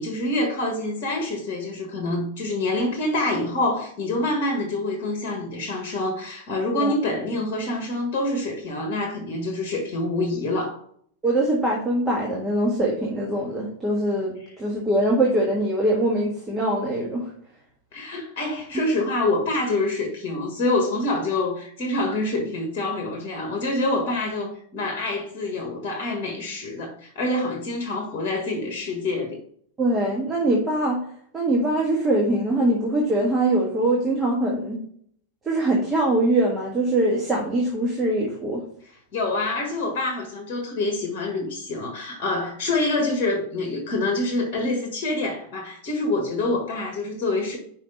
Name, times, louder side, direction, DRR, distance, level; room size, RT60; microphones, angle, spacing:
voice 1, 0.0-10.8 17.9-29.4 39.1-47.6, left 2 dB, 40° left, 1.4 m, -26 dB
voice 2, 11.2-17.3 29.8-31.0 31.3-34.8 35.4-38.6, right 1 dB, 15° right, 1.6 m, -23 dB
5.8 x 4.9 x 3.8 m
figure-of-eight pair, 90°, 0 cm